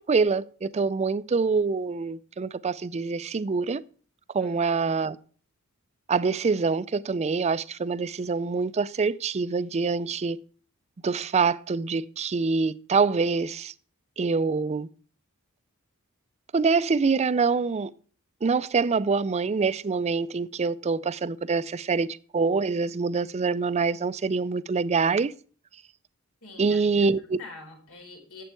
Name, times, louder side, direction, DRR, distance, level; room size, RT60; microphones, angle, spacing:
voice 1, 0.0-3.8 4.3-5.2 6.1-10.4 11.0-13.7 14.2-14.9 16.5-17.9 18.4-22.1 22.3-25.3 26.6-27.4, right 4 dB, 30° right, 0.4 m, -25 dB
voice 2, 4.4-4.9 26.4-27.1 27.4-28.4, left 3 dB, 80° left, 4.2 m, -45 dB
11.5 x 7.8 x 4.6 m
head